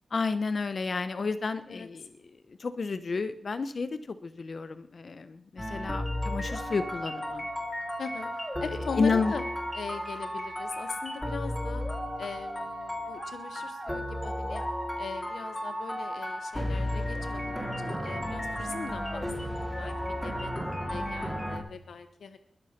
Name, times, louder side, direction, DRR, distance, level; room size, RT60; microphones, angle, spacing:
voice 1, 0.1-2.1 2.5-7.5 9.0-9.3, left 4 dB, 55° left, 12 dB, 0.8 m, -31 dB
sound 1, 5.6-21.6, equal, 5° left, 3.3 m, -34 dB
voice 2, 8.0-9.4 9.7-11.8 12.2-14.6 15.0-19.3 19.6-20.5 20.9-22.4, left 5 dB, 85° left, 10 dB, 1.0 m, -40 dB
21.0 x 8.1 x 5.8 m, 0.82 s
wide cardioid pair, 85°, 0 cm